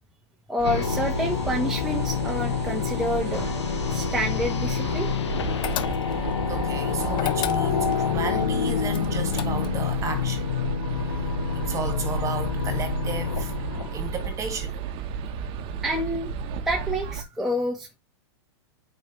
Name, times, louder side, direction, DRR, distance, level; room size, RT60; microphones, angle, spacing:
voice 1, 0.5-3.5 3.9-5.1 5.5-5.9 15.8-16.3 16.7-18.0, equal, ahead, 1.2 m, -28 dB
sound 1, 0.6-14.7, left 7 dB, 90° left, 1.0 m, -28 dB
sound 2, 0.6-17.2, right 5 dB, 40° right, 1.1 m, -33 dB
sound 3, 5.6-6.3 7.1-8.0 8.9-9.9, left 12 dB, 35° left, 0.8 m, -32 dB
voice 2, 6.5-10.5 11.5-13.5 13.9-14.8, right 5 dB, 20° right, 2.1 m, -34 dB
8.3 x 5.0 x 3.2 m
hypercardioid pair, 130°, 14 cm